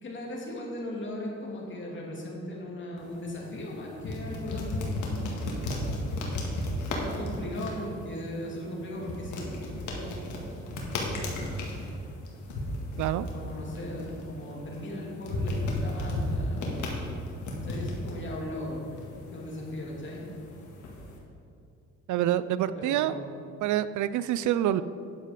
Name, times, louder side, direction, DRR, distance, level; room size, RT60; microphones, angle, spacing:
voice 1, 0.0-5.4 7.0-10.5 13.3-17.1 17.4-18.8 19.2-20.3 22.7-23.3, left 1 dB, 40° left, -3 dB, 2.8 m, -38 dB
sound 1, 3.0-21.2, left 1 dB, 75° left, 2.0 m, -35 dB
voice 2, 22.1-23.2 23.6-24.8, right 12 dB, 75° right, 15 dB, 0.4 m, -26 dB
9.9 x 7.5 x 5.1 m, 2.5 s
cardioid pair, 90°, 30 cm